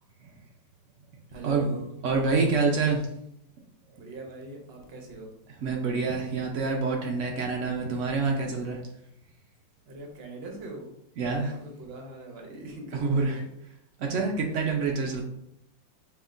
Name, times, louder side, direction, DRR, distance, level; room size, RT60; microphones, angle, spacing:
voice 1, 1.3-1.9 4.0-5.4 9.9-11.0 11.4-13.5, right 2 dB, 55° right, 2 dB, 0.7 m, -41 dB
voice 2, 2.0-3.1 5.6-8.8 11.2-11.5 12.9-13.4 14.0-15.2, right 4 dB, 85° right, 0 dB, 0.6 m, -26 dB
5.1 x 2.8 x 2.5 m, 0.77 s
omnidirectional pair, 1.9 m